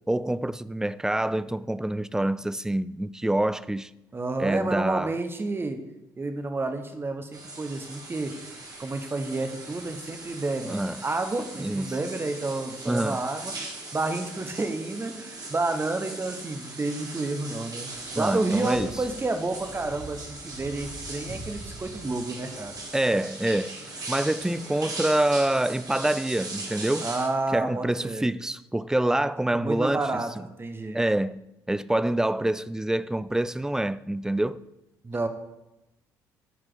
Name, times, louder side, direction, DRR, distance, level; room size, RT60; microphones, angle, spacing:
voice 1, 0.1-3.9 4.4-5.1 10.6-11.0 11.6-12.0 12.9-13.2 18.2-18.9 22.9-23.8 24.1-27.1 27.5-30.1 30.9-34.6, right 1 dB, 5° right, 0.3 m, -26 dB
voice 2, 4.1-5.8 6.2-8.3 8.8-13.5 13.9-17.9 18.1-22.8 27.0-28.2 29.5-30.3 30.6-31.0 35.0-35.3, right 2 dB, 25° right, 1.2 m, -30 dB
sound 1, 7.3-27.3, right 2 dB, 40° right, 1.8 m, -39 dB
sound 2, 17.8-26.0, right 1 dB, 85° left, 3.7 m, -46 dB
13.5 x 4.8 x 4.0 m
figure-of-eight pair, 50°, 10 cm